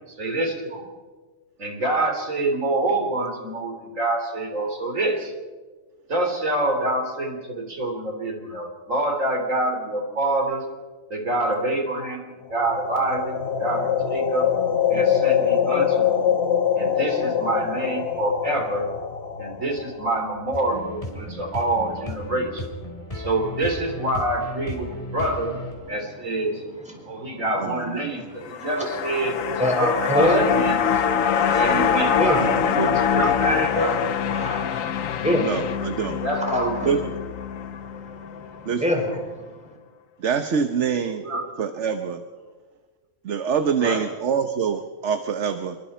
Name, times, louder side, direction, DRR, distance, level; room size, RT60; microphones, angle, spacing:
voice 1, 0.2-0.9 1.6-5.3 6.1-10.6 11.1-14.5 14.9-16.3 16.8-18.9 19.4-22.6 23.1-25.6 25.9-26.6 27.1-30.9 31.5-32.5 32.9-34.0 36.1-37.0 41.2-41.5 43.8-44.1, right 2 dB, 80° right, 3 dB, 4.0 m, -26 dB
sound 1, 12.5-20.5, left 8 dB, 55° left, 1.4 m, -24 dB
sound 2, 20.5-25.7, left 1 dB, 25° left, 4.0 m, -35 dB
voice 2, 27.0-27.4 28.6-28.7 29.6-30.5 32.2-32.5 33.8-34.0 34.3-35.6 36.4-36.6 37.5-37.8 38.1-39.2, left 1 dB, 5° right, 0 dB, 4.9 m, -26 dB
sound 3, 28.4-38.8 39.1-39.2, left 8 dB, 85° left, 1.2 m, -24 dB
voice 3, 32.4-33.1 35.4-36.2 36.8-37.0 38.7-38.8 40.2-41.2 41.6-42.2 43.2-45.8, right 6 dB, 65° right, 8 dB, 1.3 m, -25 dB
27.0 x 22.5 x 4.4 m, 1.3 s
omnidirectional pair, 1.3 m